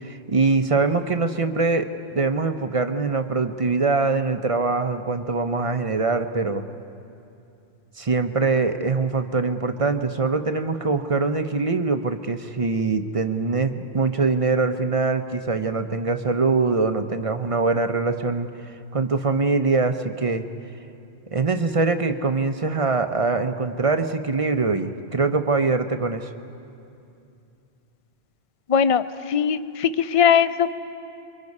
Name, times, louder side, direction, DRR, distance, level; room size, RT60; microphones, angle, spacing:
voice 1, 0.0-1.9 2.1-6.6 8.0-20.4 21.3-26.3, right 3 dB, 35° right, 8 dB, 0.7 m, -23 dB
voice 2, 28.7-30.8, left 7 dB, 40° left, 13 dB, 0.5 m, -20 dB
29.0 x 23.5 x 5.4 m, 2.7 s
omnidirectional pair, 1.1 m